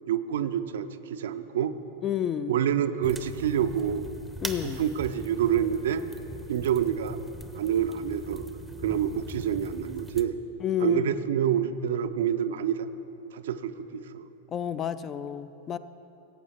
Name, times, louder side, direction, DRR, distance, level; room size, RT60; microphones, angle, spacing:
voice 1, 0.1-1.7 2.5-4.1 4.6-6.0 6.5-7.2 7.5-8.5 8.8-10.3 10.8-12.9 13.3-14.3, right 9 dB, 60° right, 11 dB, 0.4 m, -27 dB
voice 2, 2.0-2.6 4.4-4.8 10.6-11.1 14.5-15.8, left 10 dB, 25° left, 14 dB, 0.3 m, -30 dB
sound 1, 3.0-10.3, right 1 dB, 5° right, 0.6 m, -41 dB
17.0 x 8.4 x 3.4 m, 3.0 s
figure-of-eight pair, 90°, 0 cm